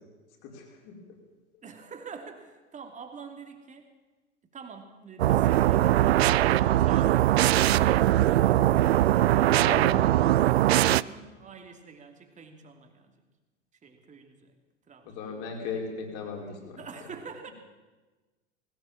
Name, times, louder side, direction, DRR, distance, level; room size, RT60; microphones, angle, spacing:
voice 1, 0.4-1.0 1.5-1.6 9.6-10.0 15.0-16.8, left 4 dB, 45° left, 1 dB, 5.2 m, -37 dB
voice 2, 1.6-3.9 4.5-8.9 10.6-13.2 13.8-14.5 14.9-15.2 16.8-17.5, right 5 dB, 20° right, 5 dB, 2.9 m, -46 dB
sound 1, 5.2-11.0, right 13 dB, 60° right, 0.5 m, -21 dB
20.0 x 18.0 x 7.3 m, 1.2 s
figure-of-eight pair, 85°, 36 cm